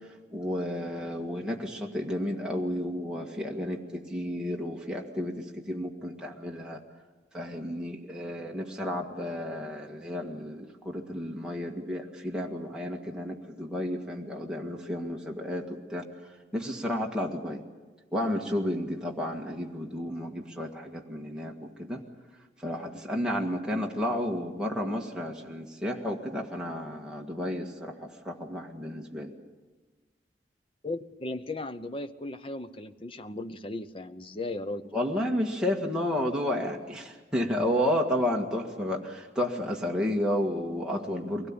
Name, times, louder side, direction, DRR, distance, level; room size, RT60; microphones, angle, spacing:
voice 1, 0.3-6.8 7.3-16.0 16.5-17.6 18.1-22.0 22.6-29.3 34.9-41.5, left 1 dB, 5° right, -1 dB, 1.8 m, -32 dB
voice 2, 30.8-34.8, left 2 dB, 30° left, 11 dB, 0.8 m, -36 dB
23.0 x 17.5 x 8.9 m, 1.3 s
head